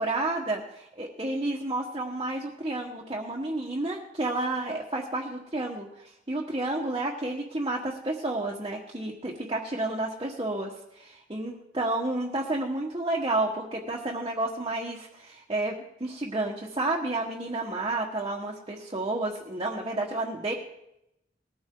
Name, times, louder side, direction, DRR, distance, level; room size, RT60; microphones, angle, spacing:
voice 1, 0.0-5.9 6.3-11.0 11.3-20.5, right 2 dB, 25° right, -3 dB, 1.5 m, -31 dB
19.5 x 14.0 x 3.9 m, 0.83 s
head